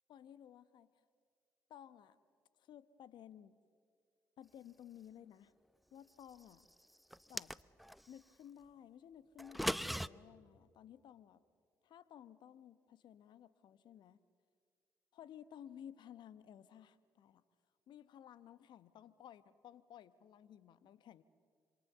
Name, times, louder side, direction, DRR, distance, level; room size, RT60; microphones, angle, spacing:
voice 1, 0.1-1.0 1.7-2.2 2.6-3.6 4.4-5.5 5.9-6.7 7.3-7.5 8.1-11.4 11.8-14.2 15.1-17.4 17.9-21.2, left 10 dB, 65° left, 15 dB, 1.2 m, -56 dB
sound 1, 7.1-8.0 9.4-10.1, equal, ahead, 0.7 m, -38 dB
27.0 x 27.0 x 6.8 m, 2.1 s
hypercardioid pair, 50°, 9 cm